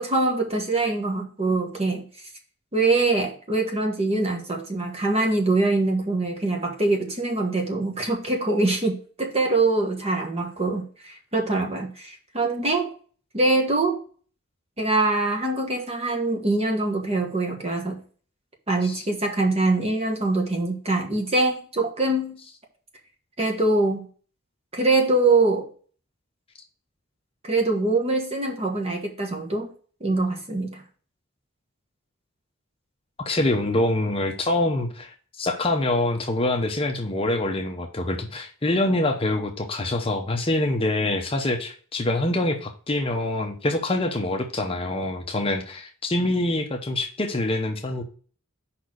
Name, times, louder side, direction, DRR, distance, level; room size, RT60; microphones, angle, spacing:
voice 1, 0.0-2.0 2.7-12.9 13.3-14.0 14.8-18.0 18.7-22.4 23.4-24.0 24.7-25.7 27.4-29.7 30.0-30.8, right 2 dB, 30° right, 1 dB, 1.4 m, -23 dB
voice 2, 33.2-48.0, left 2 dB, 25° left, 4 dB, 0.7 m, -25 dB
5.2 x 4.3 x 6.1 m, 0.43 s
head